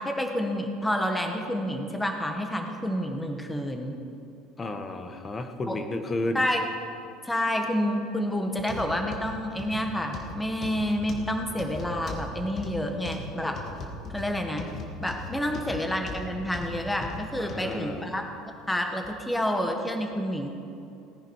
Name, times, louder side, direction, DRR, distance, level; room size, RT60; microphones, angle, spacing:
voice 1, 0.0-3.9 5.7-5.8 6.3-6.7 7.2-13.6 14.1-14.7 15.0-18.2 18.7-20.5, equal, 5° left, 4 dB, 1.4 m, -29 dB
voice 2, 4.6-6.4 17.4-18.0, left 2 dB, 25° left, 7 dB, 1.1 m, -32 dB
sound 1, 8.6-17.7 18.2-18.4 19.0-19.1, left 2 dB, 40° left, 1.8 m, -39 dB
18.5 x 10.0 x 4.7 m, 2.7 s
cardioid pair, 130°, 0 cm